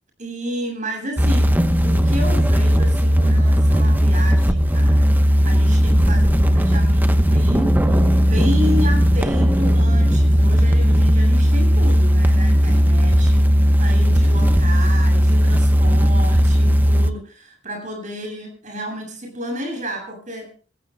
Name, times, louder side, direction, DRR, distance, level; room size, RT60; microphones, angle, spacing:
voice 1, 0.2-20.5, equal, 45° right, 3 dB, 7.6 m, -31 dB
sound 1, 1.2-17.1, equal, 10° right, 0.9 m, -16 dB
27.5 x 15.5 x 2.2 m, 0.36 s
head